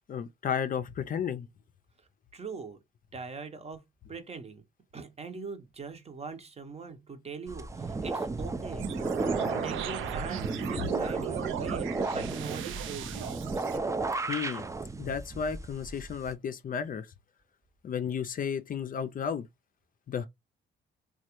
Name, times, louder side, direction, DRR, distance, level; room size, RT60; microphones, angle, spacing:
voice 1, 0.1-1.5 14.3-14.6 15.0-17.1 17.8-19.5 20.1-20.3, left 7 dB, 45° left, 0.5 m, -33 dB
voice 2, 2.3-2.8 3.1-3.8 4.1-4.6 4.9-9.0 9.6-13.2, right 5 dB, 30° right, 0.8 m, -41 dB
sound 1, 7.5-16.3, right 3 dB, 15° right, 0.4 m, -34 dB
sound 2, 8.8-13.8, right 9 dB, 85° right, 0.5 m, -37 dB
3.1 x 2.3 x 2.9 m
cardioid pair, 90°, 20 cm